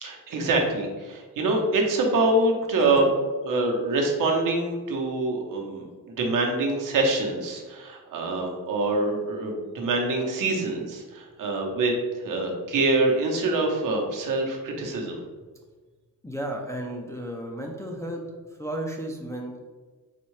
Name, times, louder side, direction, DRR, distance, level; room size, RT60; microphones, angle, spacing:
voice 1, 0.0-3.0 3.4-15.2, right 2 dB, 70° right, 1 dB, 0.9 m, -25 dB
voice 2, 16.2-18.2 18.6-19.6, right 1 dB, 10° left, -1 dB, 0.3 m, -33 dB
4.1 x 3.5 x 3.2 m, 1.4 s
wide cardioid pair, 165°, 33 cm